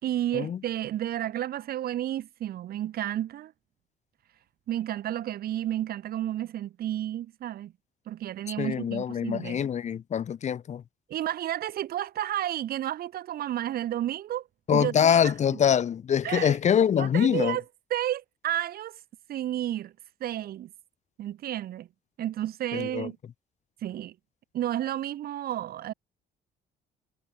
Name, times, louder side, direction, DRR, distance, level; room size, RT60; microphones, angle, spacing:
voice 1, 0.0-3.5 4.7-7.7 8.1-9.7 11.1-15.6 16.2-16.6 16.9-17.6 17.9-19.0 19.3-19.9 20.2-20.7 21.2-21.9 22.2-23.2 23.8-24.1 24.5-25.9, right 12 dB, 65° right, 4.3 m, -31 dB
voice 2, 8.6-10.8 14.7-17.6 22.7-23.1, left 8 dB, 45° left, 1.4 m, -24 dB
cardioid pair, 110°, 17 cm